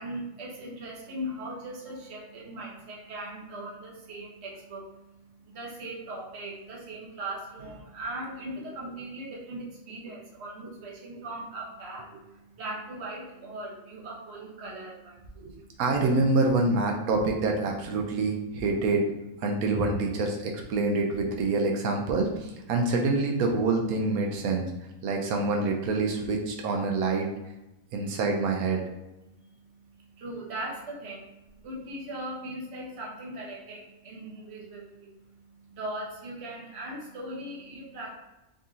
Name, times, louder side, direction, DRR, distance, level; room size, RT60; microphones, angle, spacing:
voice 1, 0.0-15.7 29.3-38.2, right 1 dB, 50° right, -2 dB, 1.2 m, -39 dB
voice 2, 15.4-19.0 19.4-24.7 25.0-27.3 27.9-28.8, right 3 dB, 90° right, 1 dB, 1.1 m, -26 dB
3.9 x 2.8 x 3.6 m, 0.97 s
omnidirectional pair, 1.5 m